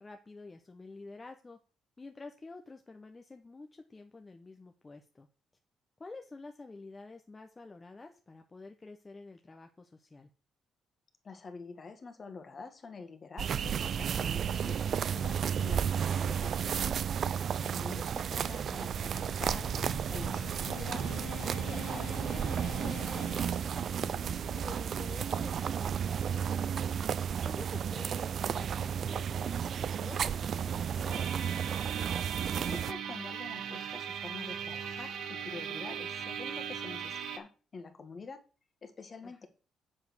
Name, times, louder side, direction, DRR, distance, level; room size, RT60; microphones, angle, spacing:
voice 1, 0.0-1.6 2.0-5.3 6.0-10.3 17.7-18.1 24.5-26.9 27.4-31.4 39.2-39.5, left 3 dB, 25° left, 5 dB, 0.9 m, -49 dB
voice 2, 11.2-17.0 17.6-19.7 20.1-23.3 32.4-38.4 38.8-39.5, left 4 dB, 40° left, 7 dB, 1.7 m, -47 dB
sound 1, 13.4-32.9, right 8 dB, 60° right, 0.4 m, -33 dB
sound 2, 18.9-25.2, left 9 dB, 90° left, 1.3 m, -47 dB
sound 3, 31.1-37.4, right 8 dB, 80° right, 1.1 m, -38 dB
7.5 x 5.2 x 6.2 m, 0.36 s
cardioid pair, 90°, 0 cm